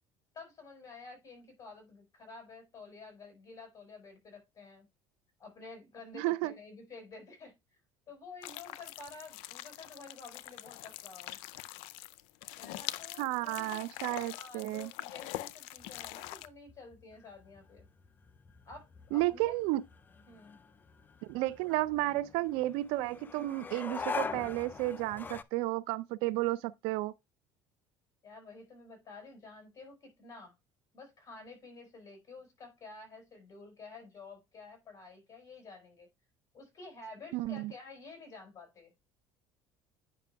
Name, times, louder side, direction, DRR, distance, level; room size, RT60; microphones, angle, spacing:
voice 1, 0.3-4.8 5.4-7.5 8.1-11.4 12.5-17.8 18.6-19.5 20.3-20.6 28.2-30.5 30.9-36.1 36.5-38.9, left 3 dB, 35° left, 4.6 m, -50 dB
voice 2, 6.1-6.5 13.2-14.9 19.1-19.8 21.2-27.1 37.3-37.7, right 18 dB, 85° right, 0.5 m, -32 dB
sound 1, 8.4-16.5, left 16 dB, 85° left, 0.5 m, -44 dB
sound 2, 15.8-25.4, left 5 dB, 20° left, 0.4 m, -44 dB
9.6 x 5.9 x 2.3 m
cardioid pair, 130°, 9 cm